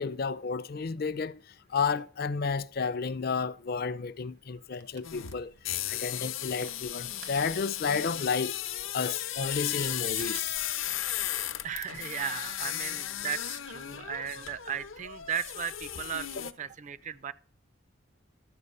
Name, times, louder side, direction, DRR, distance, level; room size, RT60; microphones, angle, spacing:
voice 1, 0.0-5.5 5.9-8.6 8.9-10.5 13.9-14.0, left 5 dB, 50° left, 0.5 m, -32 dB
sound 1, 4.2-6.0 6.2-14.4, right 7 dB, 65° right, 0.9 m, -53 dB
sound 2, 5.0-16.5, left 12 dB, 80° left, 0.8 m, -35 dB
voice 2, 11.6-17.3, right 8 dB, 35° right, 0.4 m, -36 dB
12.5 x 6.9 x 5.4 m
head